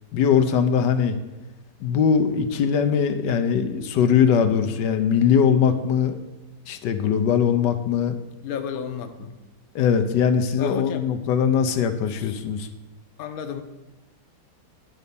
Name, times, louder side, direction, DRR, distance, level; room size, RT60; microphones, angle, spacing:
voice 1, 0.1-1.2 1.8-6.2 6.7-8.2 9.7-12.7, left 7 dB, 85° left, 8 dB, 1.3 m, -21 dB
voice 2, 8.4-9.3 10.6-11.0 12.1-12.4 13.2-13.6, left 8 dB, 60° left, 7 dB, 1.1 m, -32 dB
10.5 x 4.1 x 6.8 m, 1.0 s
omnidirectional pair, 1.9 m